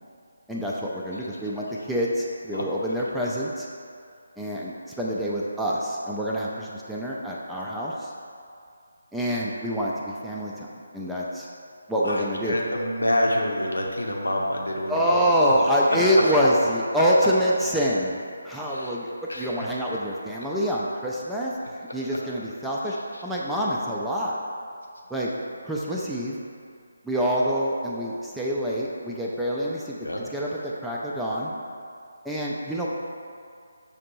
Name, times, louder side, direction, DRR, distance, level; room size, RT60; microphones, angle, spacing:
voice 1, 0.5-3.7 4.4-8.1 9.1-10.7 10.9-11.5 11.9-12.6 14.9-18.2 18.4-21.5 21.9-23.0 23.2-24.4 25.1-25.3 25.6-26.4 27.0-30.0 30.3-31.5 32.2-32.9, equal, ahead, -6 dB, 0.3 m, -26 dB
voice 2, 12.0-15.3 16.2-16.3 18.7-18.9 19.3-19.8 22.9-23.2 30.0-30.2, left 1 dB, 70° left, -1 dB, 0.7 m, -28 dB
6.5 x 2.5 x 2.9 m, 2.4 s
figure-of-eight pair, 150°, 0 cm